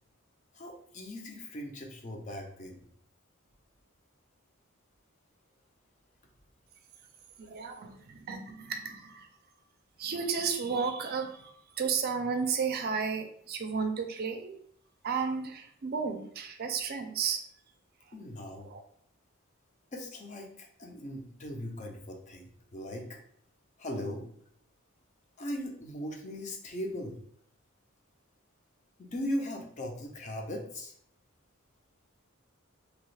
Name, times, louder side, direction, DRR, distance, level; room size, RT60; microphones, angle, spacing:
voice 1, 0.5-2.8 18.1-18.7 19.9-23.2 23.8-24.3 25.4-27.2 29.0-30.9, left 1 dB, 35° left, 2 dB, 0.5 m, -39 dB
voice 2, 7.4-9.3 10.0-14.6 15.0-17.4 18.0-18.1 18.6-18.8, right 5 dB, 45° right, 5 dB, 0.4 m, -33 dB
2.9 x 2.3 x 3.1 m, 0.65 s
head